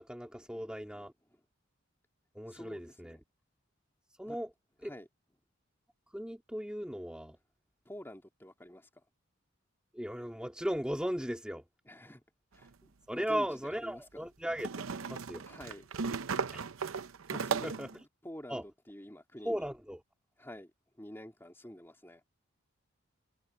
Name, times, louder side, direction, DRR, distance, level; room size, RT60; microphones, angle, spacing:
voice 1, 0.0-1.1 2.4-3.2 4.2-4.5 4.8-4.9 6.1-7.4 9.9-11.6 13.1-14.7 15.1-15.4 16.5-16.6 17.5-17.9 18.5-18.6 19.5-20.0, equal, 5° right, 2.0 m, -37 dB
voice 2, 2.5-3.2 4.2-4.4 4.8-5.1 7.8-9.0 11.8-12.2 12.5-14.2 15.4-15.9 17.3-17.8 18.2-19.7 20.4-20.7 21.0-22.2, equal, 10° left, 2.9 m, -48 dB
sound 1, 12.6-12.7 14.6-17.9, right 5 dB, 90° right, 0.7 m, -36 dB
open air
head